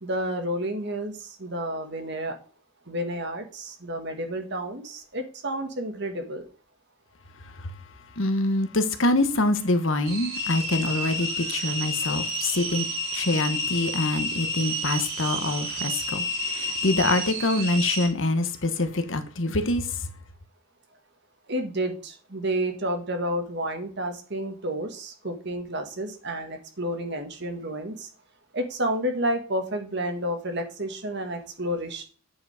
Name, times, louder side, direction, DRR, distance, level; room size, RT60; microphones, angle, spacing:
voice 1, 0.0-1.1 1.4-2.3 2.9-6.4 21.5-28.1 28.5-32.0, right 1 dB, 55° right, 1.7 m, -30 dB
voice 2, 8.2-12.9 13.1-19.9, left 2 dB, 60° left, 1.2 m, -25 dB
sound 1, 10.0-18.1, equal, 85° right, 5.1 m, -30 dB
8.9 x 5.2 x 4.9 m
head